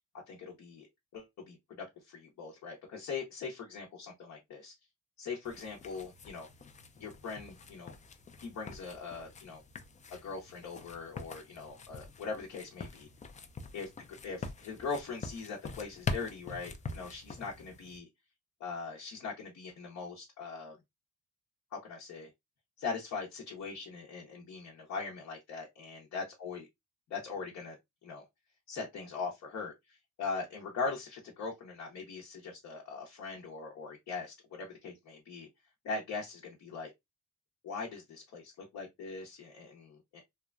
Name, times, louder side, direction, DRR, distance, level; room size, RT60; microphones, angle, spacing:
voice 1, 0.3-0.9 1.1-4.7 5.2-6.5 7.0-7.9 8.4-9.6 10.1-13.1 13.7-13.9 14.2-18.1 18.6-20.8 21.7-22.3 22.8-26.6 27.1-27.8 28.0-28.2 28.7-35.5 35.8-36.9 37.6-40.2, left 4 dB, 60° left, 0.8 m, -41 dB
sound 1, 5.4-18.0, left 4 dB, 25° left, 0.4 m, -44 dB
2.9 x 2.2 x 2.3 m
cardioid pair, 90°, 30 cm